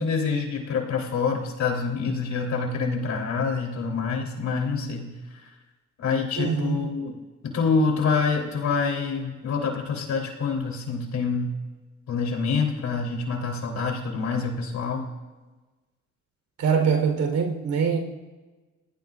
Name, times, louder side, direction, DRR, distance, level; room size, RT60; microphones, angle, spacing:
voice 1, 0.0-5.1 6.0-7.1 7.4-11.5 12.1-15.0, left 5 dB, 65° left, 3.5 m, -26 dB
voice 2, 6.4-6.9 16.6-18.0, right 6 dB, 70° right, 3.8 m, -23 dB
29.5 x 18.0 x 2.5 m
cardioid pair, 90°, 30 cm